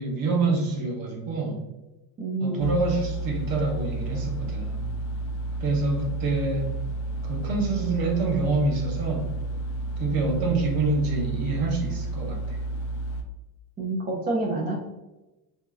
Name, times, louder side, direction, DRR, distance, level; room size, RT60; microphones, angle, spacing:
voice 1, 0.0-1.6 2.4-4.9 5.6-6.8 7.2-9.3 10.0-12.6, right 3 dB, 45° right, 0 dB, 0.8 m, -26 dB
voice 2, 2.2-2.8 13.8-14.9, right 2 dB, 20° right, -3 dB, 0.4 m, -28 dB
sound 1, 2.6-13.2, right 2 dB, 70° left, 0.6 m, -31 dB
3.0 x 2.7 x 2.3 m, 1.0 s
cardioid pair, 120°, 48 cm